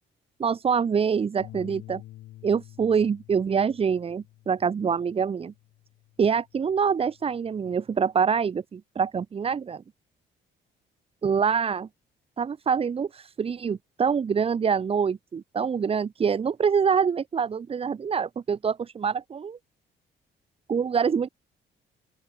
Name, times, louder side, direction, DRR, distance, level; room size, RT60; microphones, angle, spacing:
voice 1, 0.4-2.0 2.4-5.5 6.2-9.8 11.2-11.9 12.4-19.6 20.7-21.3, right 6 dB, 30° right, 0.5 m, -25 dB
sound 1, 1.4-7.6, left 15 dB, 85° left, 1.6 m, -49 dB
open air
cardioid pair, 90°, 20 cm